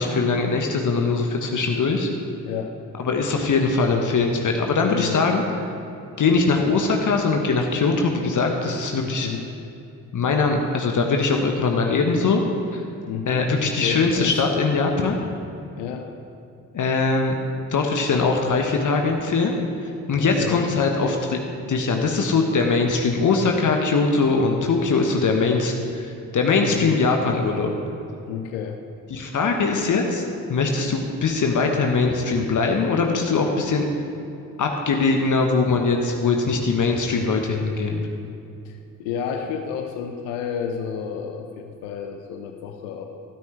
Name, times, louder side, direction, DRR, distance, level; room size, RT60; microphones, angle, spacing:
voice 1, 0.0-2.1 3.0-5.4 6.2-9.3 10.1-12.4 12.7-12.8 13.3-15.2 16.7-17.4 17.7-19.6 20.1-21.4 21.7-27.7 29.1-30.2 30.5-33.9 34.6-38.1, left 4 dB, 45° left, 3 dB, 1.3 m, -21 dB
voice 2, 2.4-2.8 4.9-5.2 9.0-9.5 13.1-14.4 15.8-16.1 20.2-20.6 26.6-26.9 28.3-28.8 38.6-43.0, left 7 dB, 70° left, 5 dB, 0.8 m, -31 dB
14.5 x 13.0 x 3.3 m, 2.7 s
figure-of-eight pair, 40°, 44 cm